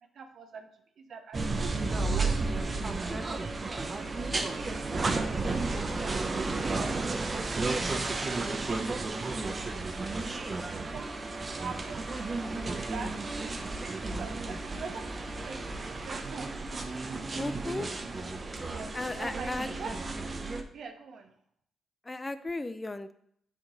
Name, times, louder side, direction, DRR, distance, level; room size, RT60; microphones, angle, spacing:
voice 1, 0.1-5.8 8.7-9.8 10.9-13.6 14.2-16.5 18.7-19.9 20.7-21.3, right 5 dB, 65° right, 6 dB, 0.8 m, -46 dB
sound 1, 1.3-20.6, right 3 dB, 35° right, 0.7 m, -33 dB
voice 2, 17.4-17.9 18.9-19.7 22.1-23.1, left 2 dB, 20° left, 12 dB, 0.4 m, -35 dB
7.2 x 3.9 x 3.7 m, 0.67 s
cardioid pair, 65°, 0 cm